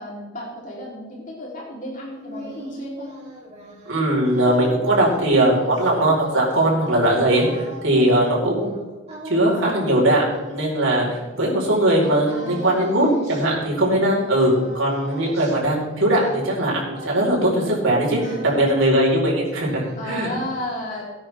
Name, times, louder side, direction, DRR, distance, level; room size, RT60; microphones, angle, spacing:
voice 1, 0.0-3.1 7.9-8.1 12.0-12.9 13.2-13.5 13.8-14.4 18.2-18.7 20.0-21.0, left 1 dB, 40° left, -4 dB, 3.7 m, -34 dB
sound 1, 1.9-11.8 12.3-14.1 14.4-17.9 18.1-19.2 19.5-20.4, equal, 30° right, 3.7 m, -40 dB
voice 2, 3.9-8.7 9.2-20.3, right 1 dB, 75° right, -3 dB, 4.8 m, -20 dB
19.0 x 9.5 x 3.6 m, 1.2 s
head